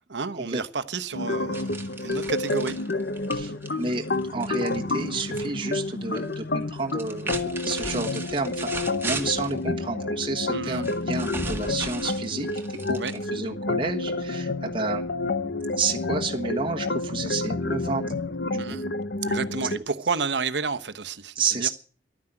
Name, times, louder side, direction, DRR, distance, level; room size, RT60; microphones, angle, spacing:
voice 1, 0.1-1.7 2.0-2.8 10.5-10.8 13.0-13.1 18.6-18.8 19.2-21.7, right 4 dB, 70° right, 1.0 m, -30 dB
sound 1, 1.1-19.8, left 2 dB, 65° left, 0.9 m, -29 dB
sound 2, 1.5-5.5 5.7-6.3 6.9-9.6 10.8-13.5, right 3 dB, 15° right, 1.8 m, -37 dB
voice 2, 3.3-4.0 4.3-8.7 9.0-13.0 13.3-15.0 15.8-18.1 18.5-18.6 21.3-21.7, right 4 dB, 30° right, 1.3 m, -30 dB
12.0 x 9.8 x 9.0 m
head